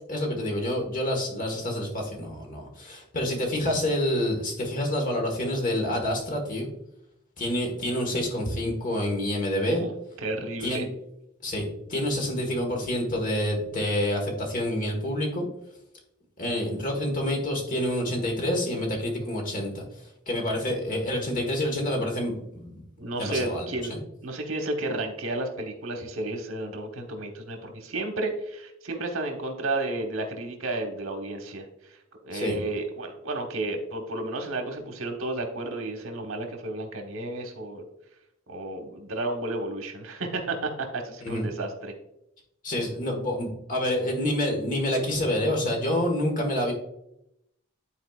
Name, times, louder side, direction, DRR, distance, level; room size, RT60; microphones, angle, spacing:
voice 1, 0.1-6.7 7.4-9.8 10.6-10.9 11.4-15.5 16.4-19.8 20.3-22.7 23.2-24.0 32.3-32.6 41.2-41.5 42.6-46.7, left 1 dB, 40° left, 1 dB, 1.5 m, -28 dB
voice 2, 10.2-10.8 23.0-24.0 24.2-37.8 38.5-41.9, right 2 dB, 80° right, 4 dB, 1.1 m, -32 dB
10.5 x 4.3 x 2.4 m, 0.82 s
head